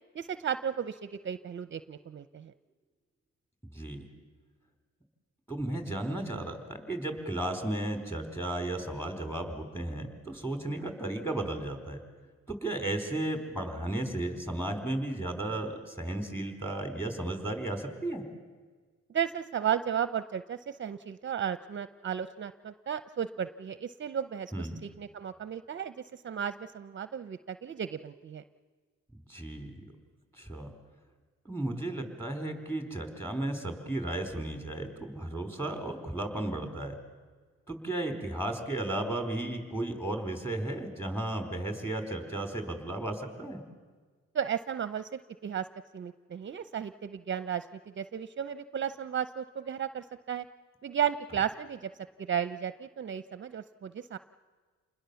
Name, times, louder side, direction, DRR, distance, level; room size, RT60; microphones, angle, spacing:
voice 1, 0.1-2.5 19.1-28.4 44.3-45.7 45.9-47.7 48.0-50.5 50.8-51.9 52.2-54.2, right 8 dB, 40° right, 13 dB, 0.7 m, -34 dB
voice 2, 3.6-4.0 5.5-12.0 12.5-18.2 24.5-24.8 29.1-29.8 30.3-30.7 31.4-37.0 37.7-43.6, right 1 dB, 10° left, 5 dB, 4.4 m, -34 dB
28.0 x 20.5 x 7.0 m, 1.5 s
cardioid pair, 90°, 30 cm